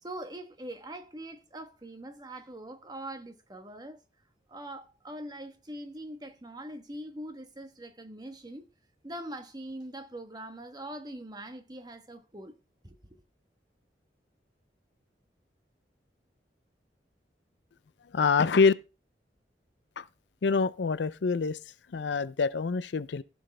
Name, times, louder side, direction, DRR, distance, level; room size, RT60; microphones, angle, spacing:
voice 1, 0.0-4.0 4.5-8.7 9.0-12.6 12.8-13.2, right 1 dB, 25° right, 1.2 m, -42 dB
voice 2, 18.1-18.7 20.0-20.1 20.4-21.6 21.9-23.2, left 5 dB, 80° left, 0.5 m, -25 dB
15.0 x 6.2 x 3.3 m
head